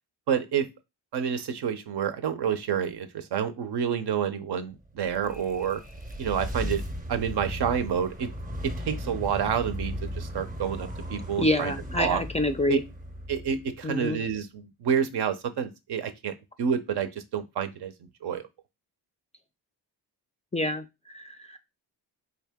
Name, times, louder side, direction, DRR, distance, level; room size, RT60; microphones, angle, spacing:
voice 1, 0.3-0.7 1.1-5.8 6.2-6.8 7.1-8.3 8.6-12.2 12.7-12.8 13.3-17.9 18.2-18.4, right 7 dB, 60° right, 10 dB, 0.7 m, -29 dB
sound 1, 4.8-14.1, equal, 20° right, 0.7 m, -36 dB
voice 2, 11.4-12.8 13.8-14.2 20.5-20.8 21.1-21.2, left 1 dB, 15° left, 8 dB, 0.4 m, -26 dB
3.8 x 2.8 x 3.5 m, 0.24 s
cardioid pair, 60°, 44 cm